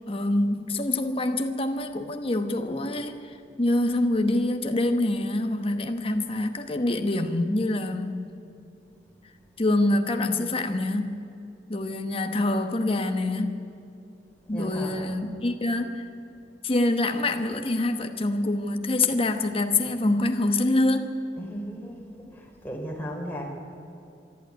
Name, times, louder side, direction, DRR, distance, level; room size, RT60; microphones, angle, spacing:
voice 1, 0.1-8.3 9.6-11.2 11.7-13.6 14.5-16.0 16.6-21.1, left 2 dB, 30° left, 6 dB, 1.1 m, -25 dB
voice 2, 14.5-15.2 21.4-23.5, equal, 10° left, 0 dB, 3.9 m, -36 dB
24.5 x 12.0 x 9.5 m, 2.7 s
head